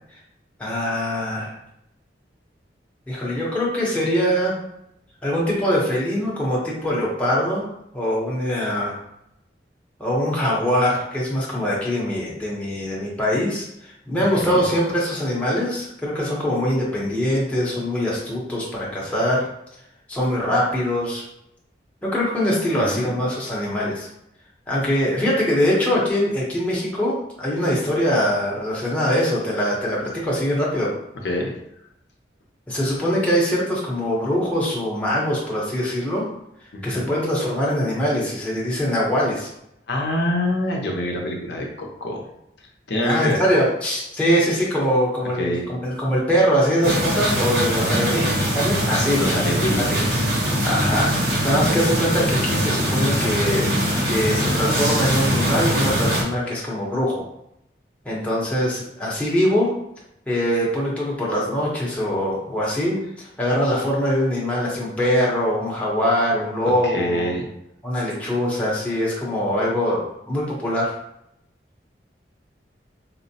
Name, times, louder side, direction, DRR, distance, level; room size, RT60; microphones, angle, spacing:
voice 1, 0.6-1.5 3.1-4.6 5.2-7.6 7.9-9.0 10.0-19.5 20.1-21.2 22.0-24.1 24.7-31.0 32.7-36.3 36.8-39.5 43.0-49.2 49.8-49.9 50.6-53.7 54.1-57.2 58.0-59.7 60.3-63.0 63.4-67.3 67.8-70.9, equal, 10° left, -6 dB, 0.7 m, -22 dB
voice 2, 22.7-23.2 31.2-31.4 36.7-37.2 39.9-42.2 42.9-43.4 45.4-45.7 47.7-48.0 49.2-50.3 66.8-67.5, left 1 dB, 75° left, 0 dB, 0.6 m, -26 dB
sound 1, 46.8-56.2, equal, 60° right, 0.9 m, -22 dB
4.3 x 2.0 x 2.7 m, 0.80 s
head